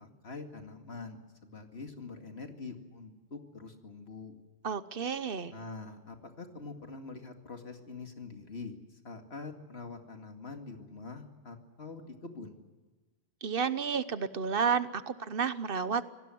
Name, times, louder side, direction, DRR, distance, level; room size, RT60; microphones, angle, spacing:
voice 1, 0.0-4.4 5.5-8.8 9.0-12.6, left 3 dB, 75° left, 5 dB, 2.5 m, -45 dB
voice 2, 4.6-5.5 13.4-16.0, right 6 dB, 60° right, 14 dB, 1.1 m, -31 dB
26.0 x 18.5 x 7.8 m, 1.3 s
omnidirectional pair, 1.1 m